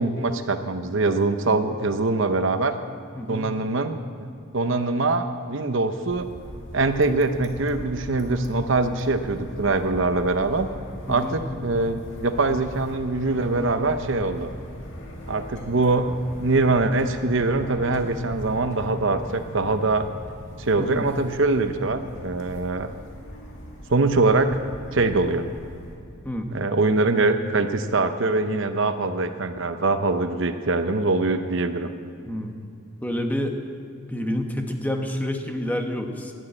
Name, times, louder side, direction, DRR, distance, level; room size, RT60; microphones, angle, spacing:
voice 1, 0.0-2.7 3.3-6.3 6.7-10.7 11.1-14.5 15.3-16.1 16.4-20.1 20.6-22.9 23.9-24.6 24.9-25.5 26.5-31.9, right 3 dB, 60° right, 9 dB, 0.7 m, -23 dB
voice 2, 3.1-3.5 11.1-11.4 20.8-21.0 26.2-26.5 32.3-32.5 33.0-33.6 34.1-36.3, left 1 dB, 10° left, 3 dB, 1.2 m, -28 dB
sound 1, 6.1-26.0, equal, 60° left, 2.5 m, -40 dB
12.5 x 11.0 x 8.7 m, 2.5 s
head